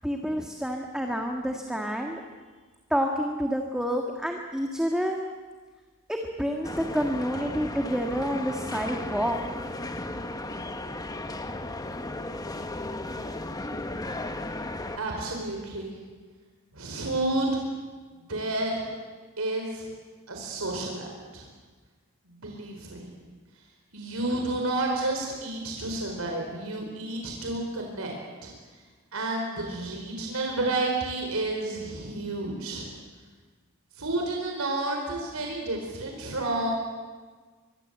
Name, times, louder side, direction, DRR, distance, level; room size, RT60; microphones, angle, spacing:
voice 1, 0.0-2.2 2.9-5.2 6.1-9.4, equal, 5° right, 2 dB, 1.7 m, -28 dB
sound 1, 6.6-15.0, left 2 dB, 20° left, 1.3 m, -35 dB
voice 2, 15.0-15.9 16.7-17.6 18.3-18.9 19.4-19.9 20.3-21.4 22.4-23.1 23.9-28.1 28.4-28.5 29.1-32.9 34.0-36.7, right 2 dB, 90° right, 1 dB, 4.7 m, -30 dB
24.0 x 23.5 x 8.1 m, 1.4 s
head